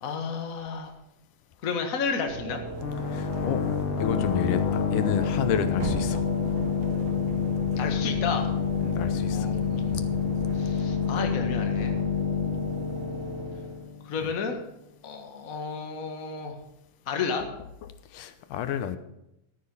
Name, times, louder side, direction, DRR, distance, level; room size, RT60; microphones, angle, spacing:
voice 1, 0.0-0.9 1.6-2.6 7.8-8.5 9.3-10.1 10.5-12.0 14.0-14.6 15.0-16.5 17.0-17.5, left 5 dB, 35° left, 4 dB, 1.5 m, -32 dB
sound 1, 2.3-14.0, right 1 dB, 85° right, 3.7 m, -37 dB
sound 2, 2.6-12.1, right 3 dB, 65° right, 3.0 m, -42 dB
sound 3, 2.8-14.3, left 7 dB, 70° left, 2.5 m, -28 dB
voice 2, 3.1-3.6 4.0-6.3 8.8-9.5 18.1-19.0, left 9 dB, 85° left, 10 dB, 2.5 m, -30 dB
14.0 x 9.3 x 5.5 m, 0.83 s
omnidirectional pair, 3.7 m